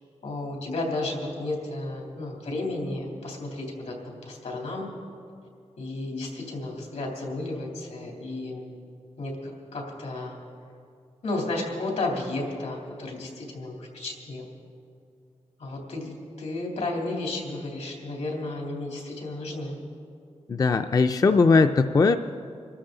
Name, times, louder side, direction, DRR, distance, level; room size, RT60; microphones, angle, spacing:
voice 1, 0.2-4.9 5.8-8.7 9.2-10.3 11.2-14.5 15.6-19.8, left 2 dB, 85° left, -1 dB, 3.1 m, -33 dB
voice 2, 20.5-22.2, left 4 dB, 30° left, 7 dB, 0.4 m, -19 dB
25.0 x 13.0 x 3.9 m, 2.4 s
wide cardioid pair, 165°, 12 cm